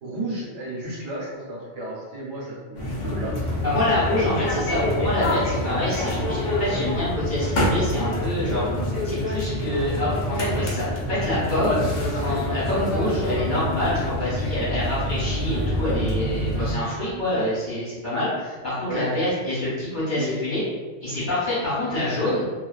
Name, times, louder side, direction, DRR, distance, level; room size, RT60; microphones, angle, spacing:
voice 1, 0.0-3.4 18.8-19.1 20.1-20.4 21.3-21.4 21.9-22.0, right 1 dB, 70° right, -5 dB, 1.0 m, -33 dB
sound 1, 2.8-16.7, left 1 dB, 60° left, 0.7 m, -26 dB
voice 2, 3.6-8.6 9.0-11.8 12.2-20.6 21.0-22.4, left 1 dB, 40° left, -10 dB, 1.0 m, -26 dB
2.3 x 2.3 x 2.3 m, 1.3 s
omnidirectional pair, 1.3 m